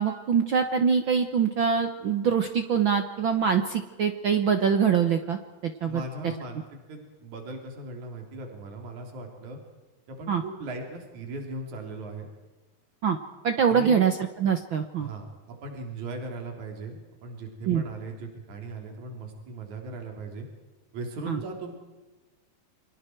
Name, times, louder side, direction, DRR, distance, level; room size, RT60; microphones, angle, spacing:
voice 1, 0.0-6.3 10.3-10.4 13.0-13.2 13.4-15.1 17.7-17.8 21.3-21.4, right 7 dB, 80° right, 7 dB, 1.1 m, -24 dB
voice 2, 5.9-9.6 10.1-12.3 13.7-14.0 15.0-20.5 20.9-21.7, right 2 dB, 55° right, 2 dB, 4.8 m, -38 dB
29.5 x 25.0 x 4.6 m, 1.2 s
omnidirectional pair, 4.0 m